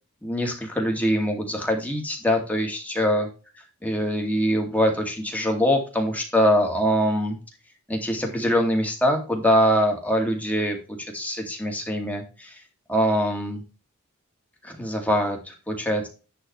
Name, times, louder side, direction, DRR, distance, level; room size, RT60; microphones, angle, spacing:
voice 1, 0.2-3.3 3.8-7.4 7.9-12.5 12.9-13.6 14.6-16.1, equal, 5° left, 1 dB, 2.2 m, -23 dB
10.5 x 4.0 x 4.5 m, 0.31 s
head